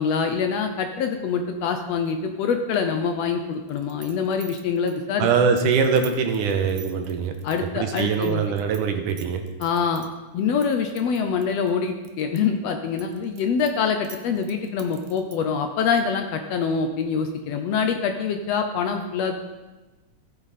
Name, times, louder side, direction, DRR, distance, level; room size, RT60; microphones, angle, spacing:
voice 1, 0.0-5.3 7.4-8.4 9.6-10.0 10.3-19.3, left 6 dB, 70° left, 6 dB, 1.6 m, -25 dB
sound 1, 3.7-8.8 9.1-10.1 10.6-12.4 12.7-15.5, right 9 dB, 70° right, 1.3 m, -44 dB
voice 2, 5.2-7.3 7.8-9.4, right 6 dB, 90° right, 5 dB, 2.6 m, -22 dB
15.5 x 9.0 x 4.2 m, 1.1 s
omnidirectional pair, 3.6 m